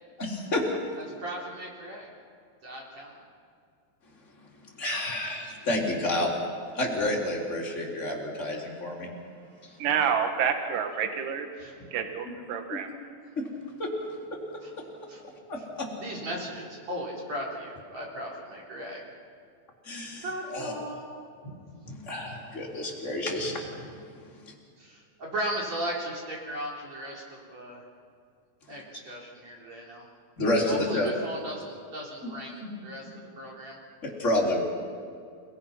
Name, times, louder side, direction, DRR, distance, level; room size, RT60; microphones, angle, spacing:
voice 1, 0.2-0.6 4.8-6.3 6.7-9.1 12.2-12.3 12.7-12.8 13.4-13.5 13.8-13.9 15.5-15.6 19.9-20.7 21.9-23.6 30.4-31.1 32.6-32.7 34.0-34.6, left 1 dB, 20° left, -2 dB, 3.9 m, -29 dB
voice 2, 1.0-2.1 2.6-3.2 11.6-11.9 14.6-14.7 15.1-15.2 16.0-19.0 20.2-21.2 21.4-21.6 23.4-23.5 24.8-27.8 28.7-30.0 30.7-33.1 33.4-33.8, right 1 dB, 45° right, -3 dB, 4.8 m, -37 dB
voice 3, 9.8-11.5 11.9-12.9, right 7 dB, 65° right, 6 dB, 3.1 m, -28 dB
29.5 x 19.5 x 5.8 m, 2.3 s
omnidirectional pair, 4.5 m